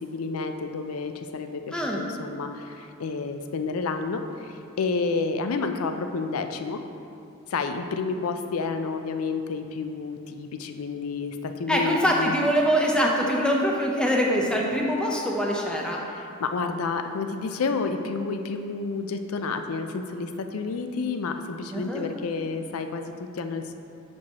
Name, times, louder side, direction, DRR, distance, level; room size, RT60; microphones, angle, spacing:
voice 1, 0.0-1.6 2.0-2.5 3.0-4.2 4.8-6.8 7.5-12.3 16.4-23.7, left 4 dB, 85° left, 7 dB, 0.4 m, -30 dB
voice 2, 1.7-2.0 11.7-16.0 21.7-22.1, equal, 5° left, -2 dB, 0.7 m, -24 dB
10.5 x 4.4 x 2.9 m, 2.6 s
head